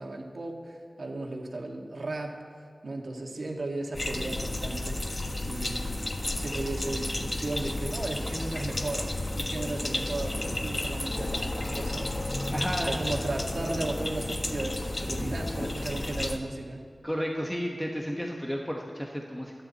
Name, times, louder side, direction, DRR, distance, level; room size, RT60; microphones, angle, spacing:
voice 1, 0.0-2.4 2.8-5.0 5.4-5.9 6.3-12.2 12.8-16.8, right 2 dB, 70° right, 0 dB, 2.1 m, -35 dB
sound 1, 3.9-16.4, left 1 dB, 35° left, 1.2 m, -32 dB
voice 2, 12.5-13.0 17.0-19.5, equal, 5° left, 0 dB, 1.3 m, -32 dB
30.0 x 11.0 x 4.3 m, 2.2 s
wide cardioid pair, 80°, 0 cm